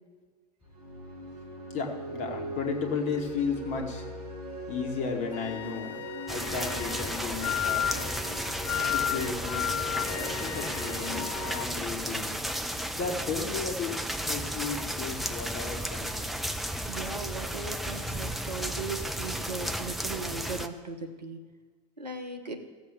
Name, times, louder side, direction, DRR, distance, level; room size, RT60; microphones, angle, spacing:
sound 1, 0.6-13.3, equal, 60° right, 2.7 m, -41 dB
voice 1, 1.7-4.1 4.7-7.9 8.9-9.7 10.0-12.3 12.9-16.5, left 5 dB, 35° left, 3 dB, 2.0 m, -34 dB
Wind instrument woodwind instrument, 5.3-11.7, left 12 dB, 50° left, 0.5 m, -34 dB
sound 2, 6.3-20.7, equal, ahead, 0.5 m, -34 dB
voice 2, 16.9-21.4 22.0-22.6, right 4 dB, 80° right, 6 dB, 1.2 m, -38 dB
15.5 x 7.7 x 7.1 m, 1.4 s
figure-of-eight pair, 85°, 21 cm